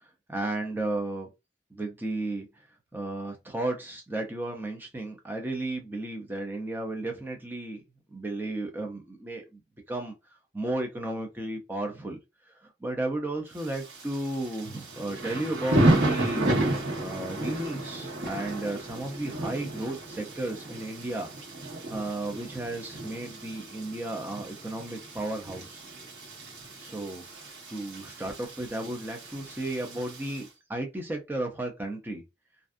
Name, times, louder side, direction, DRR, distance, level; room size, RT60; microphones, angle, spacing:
voice 1, 0.3-1.3 1.7-2.5 2.9-7.8 8.1-9.6 9.9-10.1 10.5-12.2 12.6-16.5 17.0-21.3 21.9-25.8 26.8-32.2, right 2 dB, 10° right, 0.5 m, -34 dB
Thunder / Rain, 13.6-30.4, right 1 dB, 80° right, 1.1 m, -32 dB
2.5 x 2.3 x 2.4 m
head